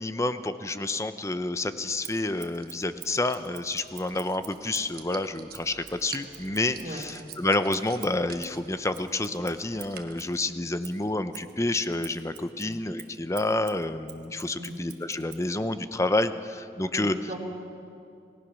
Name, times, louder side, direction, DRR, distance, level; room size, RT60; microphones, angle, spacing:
voice 1, 0.0-17.1, left 2 dB, 15° left, 11 dB, 0.7 m, -29 dB
sound 1, 1.6-10.3, right 7 dB, 55° right, 1.2 m, -49 dB
Scissors, 2.0-5.0 5.5-10.4 10.8-15.5, right 13 dB, 70° right, 1.4 m, -48 dB
voice 2, 14.6-14.9 16.9-17.4, equal, 35° right, -2 dB, 2.9 m, -38 dB
28.5 x 17.5 x 6.3 m, 2.5 s
head